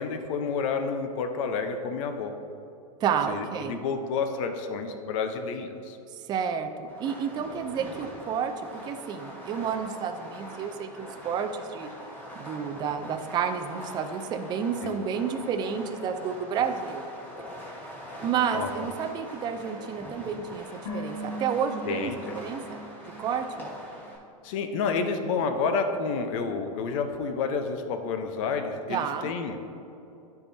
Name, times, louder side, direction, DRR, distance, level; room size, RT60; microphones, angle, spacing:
voice 1, 0.0-2.3 3.3-6.0 14.8-14.9 18.5-18.9 21.8-22.4 24.4-29.6, left 5 dB, 55° left, 6 dB, 0.8 m, -30 dB
voice 2, 3.0-3.8 6.3-8.5 8.9-11.9 12.4-17.1 18.2-23.7 28.9-29.3, right 7 dB, 20° right, 7 dB, 0.4 m, -30 dB
Fireworks, 6.9-24.2, equal, 10° left, 1.4 m, -43 dB
sound 1, 20.9-24.2 24.4-24.5, right 1 dB, 90° left, 1.5 m, -40 dB
11.0 x 4.7 x 2.7 m, 2.7 s
hypercardioid pair, 120°, 19 cm